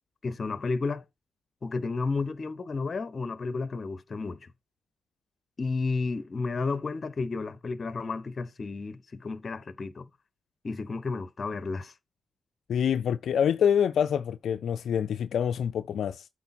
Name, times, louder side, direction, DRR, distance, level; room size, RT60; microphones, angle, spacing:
voice 1, 0.2-1.1 1.6-4.5 5.6-10.1 10.6-11.9, left 4 dB, 45° left, 0.9 m, -32 dB
voice 2, 12.7-16.3, left 8 dB, 80° left, 0.3 m, -26 dB
8.3 x 4.2 x 4.3 m
cardioid pair, 65°, 0 cm